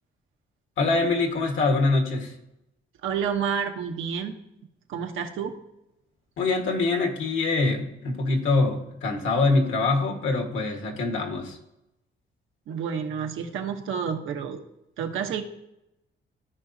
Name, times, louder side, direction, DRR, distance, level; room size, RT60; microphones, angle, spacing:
voice 1, 0.8-2.3 6.4-11.6, left 3 dB, 80° left, 2 dB, 1.5 m, -24 dB
voice 2, 3.0-4.4 4.9-5.6 12.7-14.6 15.0-15.4, right 7 dB, 85° right, 4 dB, 1.0 m, -29 dB
14.5 x 4.9 x 2.7 m, 0.87 s
cardioid pair, 85°, 20 cm